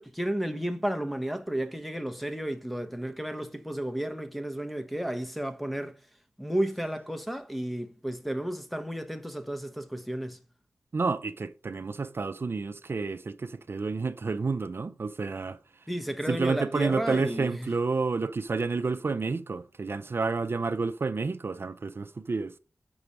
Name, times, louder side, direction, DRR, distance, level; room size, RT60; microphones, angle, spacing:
voice 1, 0.0-6.0 6.4-10.4 15.9-17.7, right 1 dB, ahead, 1.0 m, -32 dB
voice 2, 10.9-15.6 16.3-22.5, right 4 dB, 55° right, 0.5 m, -30 dB
6.9 x 4.9 x 5.3 m
cardioid pair, 45°, 5 cm